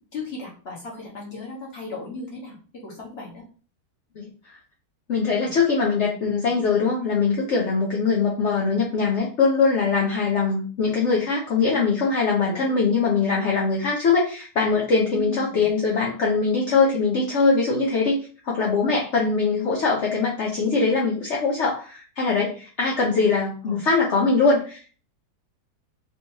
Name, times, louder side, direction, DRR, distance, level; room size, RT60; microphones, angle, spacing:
voice 1, 0.1-3.4 5.3-5.5 12.5-12.8 15.1-15.7 23.6-23.8, left 2 dB, 40° left, -4 dB, 1.6 m, -37 dB
voice 2, 5.1-18.2 18.4-24.9, left 4 dB, 55° left, -3 dB, 0.9 m, -22 dB
4.4 x 3.0 x 2.8 m, 0.39 s
omnidirectional pair, 1.7 m